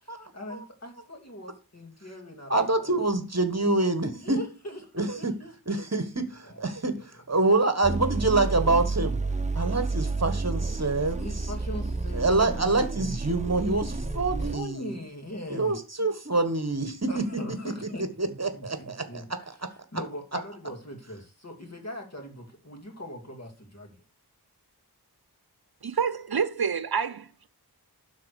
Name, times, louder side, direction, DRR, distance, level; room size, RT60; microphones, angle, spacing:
voice 1, 0.0-3.0 4.1-5.8 6.4-6.7 7.0-7.2 11.2-12.7 14.4-16.1 17.0-18.1 18.5-24.0, left 1 dB, 40° left, 2.6 m, -41 dB
voice 2, 2.5-4.4 5.0-5.3 5.7-6.9 7.3-9.2 9.5-11.3 12.2-14.9 15.5-17.2 18.2-19.2, right 2 dB, 40° right, 1.5 m, -26 dB
sound 1, 7.8-14.6, right 3 dB, 20° right, 0.9 m, -30 dB
voice 3, 25.8-27.5, right 6 dB, 65° right, 0.7 m, -28 dB
12.0 x 4.2 x 6.5 m
wide cardioid pair, 60°, 40 cm